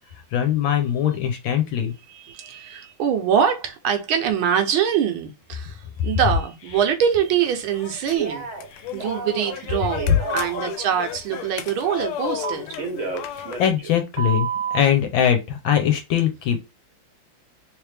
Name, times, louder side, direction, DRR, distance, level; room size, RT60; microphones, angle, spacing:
voice 1, 0.3-1.9 8.8-8.9 13.3-16.6, left 9 dB, 70° left, 1.4 m, -22 dB
voice 2, 2.1-8.5 8.9-12.7, right 8 dB, 75° right, 1.4 m, -24 dB
sound 1, 7.1-13.7, left 9 dB, 90° left, 1.5 m, -34 dB
Telephone, 8.1-8.7 9.0-10.7 12.4-13.9 14.2-14.8, right 5 dB, 50° right, 1.0 m, -30 dB
3.4 x 3.2 x 3.2 m
omnidirectional pair, 2.4 m